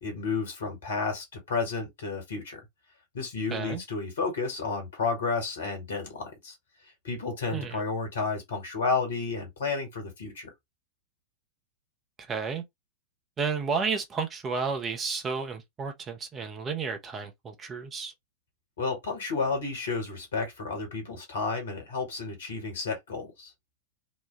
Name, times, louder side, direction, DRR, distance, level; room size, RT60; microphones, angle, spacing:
voice 1, 0.0-2.6 3.1-6.5 7.0-10.5 18.8-23.5, left 4 dB, 65° left, 1.5 m, -31 dB
voice 2, 3.5-3.8 7.5-7.8 12.2-12.6 13.4-18.1, right 5 dB, 25° right, 0.7 m, -32 dB
3.1 x 2.2 x 3.1 m
figure-of-eight pair, 90°, 0 cm